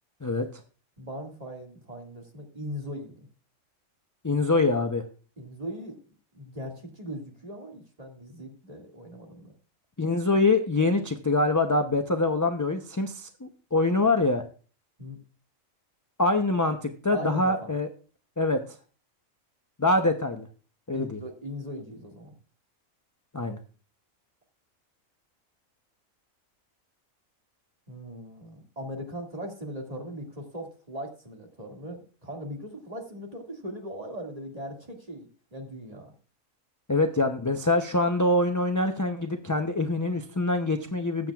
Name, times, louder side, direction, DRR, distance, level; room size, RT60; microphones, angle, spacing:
voice 1, 1.0-3.3 5.4-6.0 6.3-9.5 15.0-15.2 17.1-17.7 20.9-22.3 27.9-36.1, equal, 25° right, 1 dB, 2.2 m, -39 dB
voice 2, 4.2-5.0 10.0-14.4 16.2-17.9 18.4-18.6 19.8-20.5 20.9-21.2 23.3-23.6 36.9-41.3, left 2 dB, 25° left, 5 dB, 0.4 m, -24 dB
20.0 x 7.5 x 2.3 m, 0.38 s
omnidirectional pair, 1.4 m